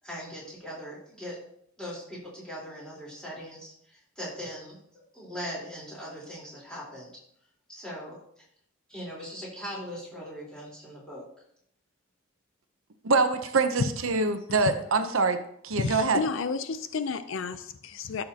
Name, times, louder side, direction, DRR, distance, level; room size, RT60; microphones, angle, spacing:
voice 1, 0.0-1.4 1.8-7.1 7.7-8.4 8.9-11.2, equal, 5° left, -7 dB, 3.8 m, -40 dB
voice 2, 13.0-16.2, right 3 dB, 75° right, 8 dB, 0.7 m, -25 dB
voice 3, 15.7-18.2, left 4 dB, 65° left, 11 dB, 0.5 m, -31 dB
13.0 x 6.5 x 2.9 m, 0.70 s
head